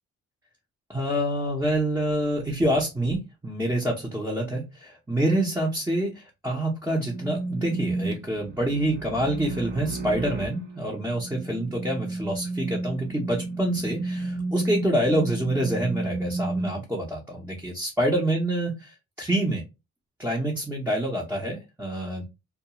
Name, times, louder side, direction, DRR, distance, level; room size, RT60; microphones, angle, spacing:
voice 1, 0.9-19.6 20.2-22.2, right 1 dB, 5° right, -3 dB, 0.7 m, -27 dB
sound 1, 7.0-16.7, right 2 dB, 35° right, 0.8 m, -32 dB
2.3 x 2.1 x 2.9 m, 0.25 s
cardioid pair, 90°, 30 cm